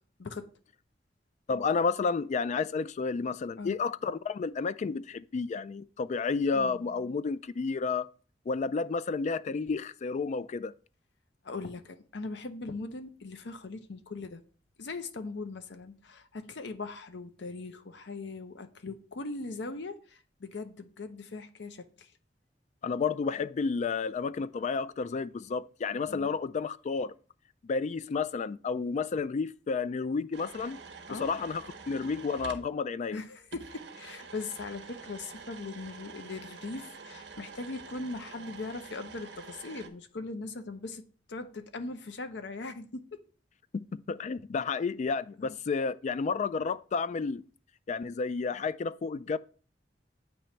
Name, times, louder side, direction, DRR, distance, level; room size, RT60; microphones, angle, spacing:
voice 1, 1.5-8.1 8.5-10.7 22.8-27.1 27.6-30.8 31.1-33.2 43.7-47.4 47.9-49.4, left 4 dB, 40° left, 0.3 m, -31 dB
voice 2, 6.5-7.1 11.4-14.4 14.8-22.1 26.1-26.3 31.1-31.3 33.1-41.0 41.3-43.0 45.4-45.6, left 3 dB, 70° left, 0.7 m, -40 dB
sound 1, 30.3-32.7 33.5-39.9, right 4 dB, 75° right, 0.9 m, -47 dB
8.7 x 3.0 x 4.4 m
head